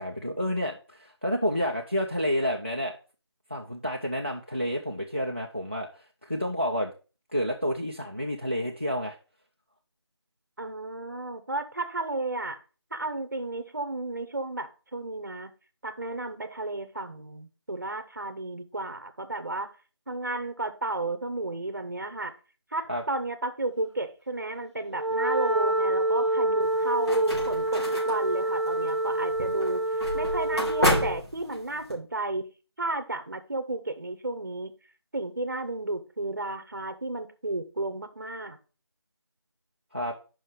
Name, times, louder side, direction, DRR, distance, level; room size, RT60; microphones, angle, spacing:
voice 1, 0.0-2.9 3.5-6.9 7.3-9.2 22.9-23.0 39.9-40.2, equal, 25° right, 0.4 m, -29 dB
voice 2, 10.6-12.6 12.9-15.5 15.8-19.7 20.1-22.3 22.7-29.9 30.1-32.5 32.8-34.7 35.1-38.6, right 2 dB, 40° right, 0.9 m, -32 dB
Wind instrument woodwind instrument, 24.9-31.2, right 1 dB, 80° right, 0.8 m, -27 dB
sound 1, 26.6-31.9, left 1 dB, 65° left, 3.6 m, -31 dB
5.4 x 5.0 x 5.2 m
figure-of-eight pair, 180°, 15 cm